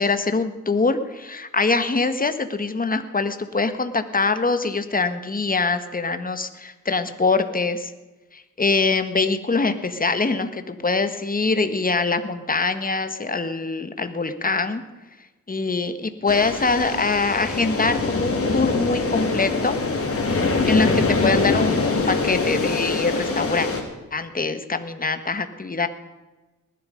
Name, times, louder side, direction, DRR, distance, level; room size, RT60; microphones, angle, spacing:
voice 1, 0.0-7.9 8.3-14.8 15.5-19.8 20.6-23.7 24.1-25.9, left 3 dB, 25° left, 9 dB, 1.5 m, -23 dB
sound 1, 16.3-23.8, left 3 dB, 45° left, 3.2 m, -23 dB
19.5 x 11.5 x 5.2 m, 1.1 s
cardioid pair, 65°, 31 cm